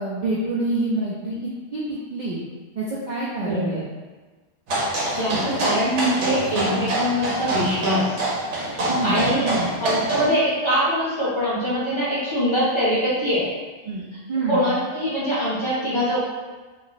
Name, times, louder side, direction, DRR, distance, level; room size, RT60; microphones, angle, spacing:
voice 1, 0.0-2.4 2.8-3.8 8.9-9.8 13.8-14.0 14.3-14.7, right 2 dB, 60° right, -6 dB, 0.5 m, -27 dB
voice 2, 3.4-3.8 4.8-8.1 8.7-9.5 9.8-13.5 14.5-16.2, equal, 30° left, -9 dB, 0.7 m, -23 dB
sound 1, 4.7-10.3, right 1 dB, 80° right, 1.0 m, -25 dB
2.4 x 2.0 x 3.8 m, 1.3 s
omnidirectional pair, 1.2 m